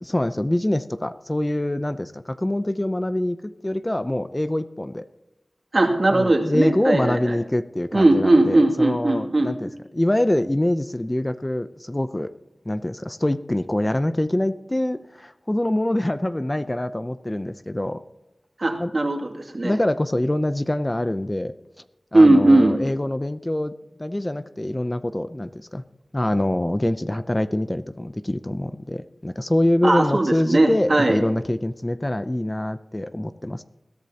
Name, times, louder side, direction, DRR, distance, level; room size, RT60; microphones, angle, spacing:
voice 1, 0.0-5.1 6.1-12.3 12.7-18.0 18.8-18.9 19.6-21.5 22.1-23.7 24.0-25.8 26.1-33.6, left 1 dB, 20° left, 11 dB, 0.5 m, -25 dB
voice 2, 5.7-7.4 7.9-9.5 18.6-19.7 22.1-22.7 29.8-31.2, right 2 dB, 55° right, 1 dB, 2.4 m, -18 dB
21.0 x 14.0 x 2.9 m, 0.98 s
wide cardioid pair, 70°, 0 cm